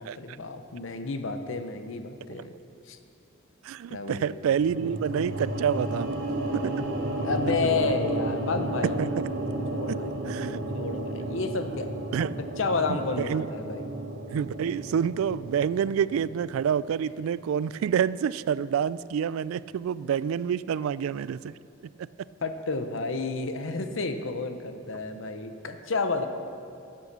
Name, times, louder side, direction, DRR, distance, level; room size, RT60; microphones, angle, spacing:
voice 1, 0.2-2.5 2.9-3.0 3.9-4.4 7.2-9.0 9.7-10.2 10.7-12.3 12.6-13.9 22.4-26.3, left 3 dB, 70° left, 8 dB, 0.8 m, -31 dB
voice 2, 3.6-6.1 6.5-6.8 8.8-9.2 9.9-10.0 10.3-10.6 12.1-12.4 12.9-13.5 14.3-21.6 22.0-22.1, right 8 dB, 85° right, 19 dB, 0.3 m, -28 dB
sound 1, 4.6-16.9, right 1 dB, 60° right, 1.2 m, -32 dB
12.0 x 8.6 x 6.7 m, 2.6 s
head